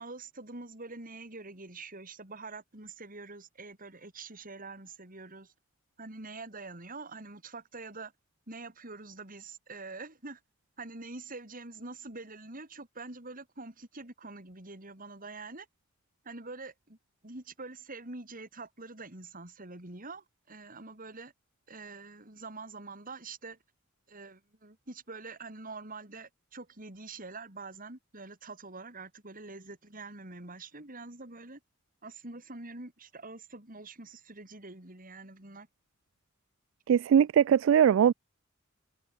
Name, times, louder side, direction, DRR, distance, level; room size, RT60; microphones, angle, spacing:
voice 1, 0.0-5.5 6.0-8.1 8.5-10.4 10.8-15.7 16.2-17.0 17.2-21.3 21.7-23.6 24.1-31.6 32.0-35.7, right 3 dB, 45° right, 4.5 m, -45 dB
voice 2, 36.9-38.1, right 8 dB, 70° right, 0.3 m, -21 dB
head